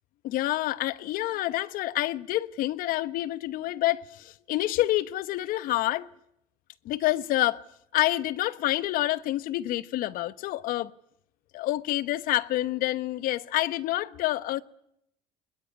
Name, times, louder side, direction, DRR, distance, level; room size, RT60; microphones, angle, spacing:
voice 1, 0.2-6.1 6.8-7.6 7.9-10.9 11.5-14.6, left 15 dB, 65° left, 1.0 m, -28 dB
21.0 x 20.5 x 9.8 m
supercardioid pair, 75°, 15 cm